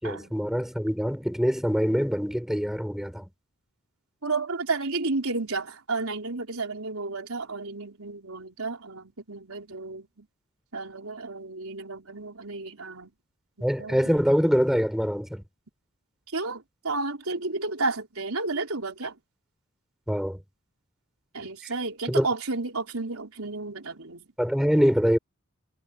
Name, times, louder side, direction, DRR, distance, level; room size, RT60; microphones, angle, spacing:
voice 1, 0.0-3.3 13.6-15.4 20.1-20.4 22.1-22.3 24.4-25.2, equal, ahead, 4.0 m, -24 dB
voice 2, 4.2-10.3 10.7-13.1 13.6-14.0 16.3-19.2 21.3-24.2, right 3 dB, 90° right, 4.0 m, -32 dB
head